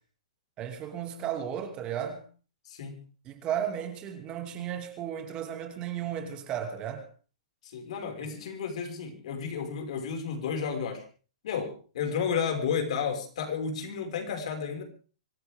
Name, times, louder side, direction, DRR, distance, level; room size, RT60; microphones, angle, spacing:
voice 1, 0.6-2.2 3.2-7.1, right 9 dB, 25° right, 2.7 m, -34 dB
voice 2, 2.7-3.0 7.7-11.0 11.4-14.8, left 6 dB, 60° left, 5.8 m, -32 dB
25.0 x 15.0 x 3.7 m
hypercardioid pair, 160°, 4 cm